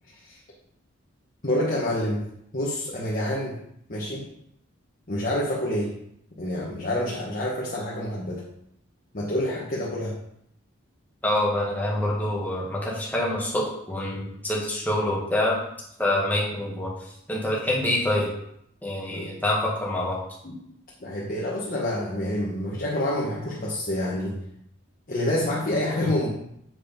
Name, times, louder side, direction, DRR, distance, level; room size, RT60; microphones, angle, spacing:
voice 1, 1.4-2.3 2.5-3.6 3.9-4.3 5.1-6.0 6.4-8.4 9.1-10.2 19.1-19.3 20.4-20.6 21.0-24.4 25.1-26.3, left 1 dB, 40° left, -5 dB, 1.3 m, -27 dB
voice 2, 11.2-15.6 16.0-16.9 17.3-18.3 18.8-20.2, left 1 dB, 10° left, -4 dB, 1.6 m, -26 dB
7.5 x 4.7 x 5.2 m, 0.75 s
head